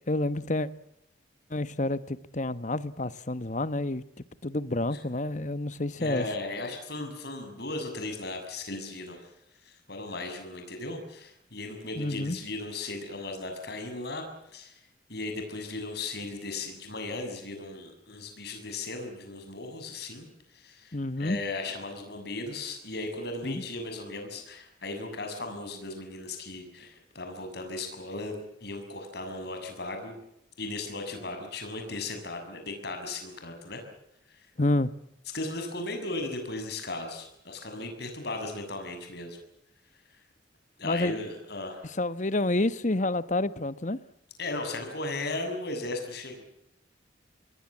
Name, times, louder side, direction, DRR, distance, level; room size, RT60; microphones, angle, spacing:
voice 1, 0.1-0.7 1.5-6.3 12.0-12.4 20.9-21.4 23.4-23.6 34.6-34.9 40.8-41.1 41.9-44.0, left 2 dB, 40° left, 1.2 m, -29 dB
voice 2, 6.0-9.2 9.6-14.3 14.5-14.8 15.1-20.3 20.5-30.2 30.6-33.8 34.3-34.4 35.3-39.4 40.8-41.8 44.4-46.4, left 2 dB, 55° left, 6.9 m, -36 dB
26.5 x 21.5 x 7.4 m
head